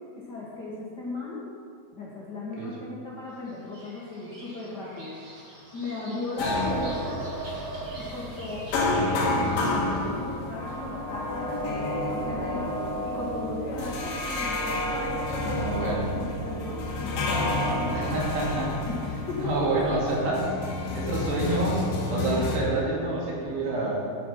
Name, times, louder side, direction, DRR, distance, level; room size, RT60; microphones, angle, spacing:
voice 1, 0.1-1.4 1.9-5.2 5.7-7.2 8.0-8.7 9.1-12.7 13.0-18.0 18.9-19.9 20.8-20.9, left 2 dB, 85° left, -6 dB, 0.9 m, -36 dB
Bird vocalization bird call bird song, 3.5-10.1, right 3 dB, 35° right, 2.8 m, -41 dB
sound 1, 6.4-22.6, left 2 dB, 65° left, 2.9 m, -30 dB
voice 2, 15.5-16.1 17.9-18.7 19.4-20.5 20.9-24.1, right 2 dB, 75° right, -5 dB, 4.6 m, -28 dB
10.0 x 9.4 x 5.7 m, 2.3 s
omnidirectional pair, 4.9 m